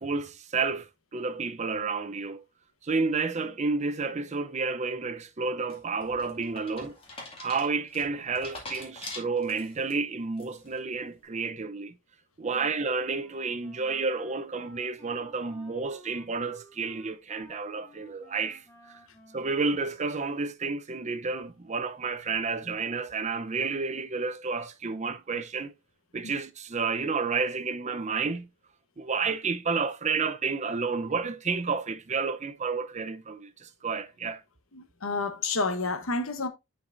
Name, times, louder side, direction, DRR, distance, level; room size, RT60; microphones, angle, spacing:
voice 1, 0.0-2.4 2.8-7.0 7.4-12.0 12.4-19.0 19.3-25.7 26.1-28.5 29.0-34.4, right 4 dB, 35° right, 0.6 m, -30 dB
sound 1, 5.7-9.9 10.4-10.8, left 2 dB, 30° left, 2.1 m, -43 dB
Wind instrument woodwind instrument, 13.2-20.6, equal, 10° left, 1.9 m, -55 dB
voice 2, 34.7-36.5, left 3 dB, 80° left, 1.1 m, -30 dB
9.7 x 4.6 x 2.5 m
head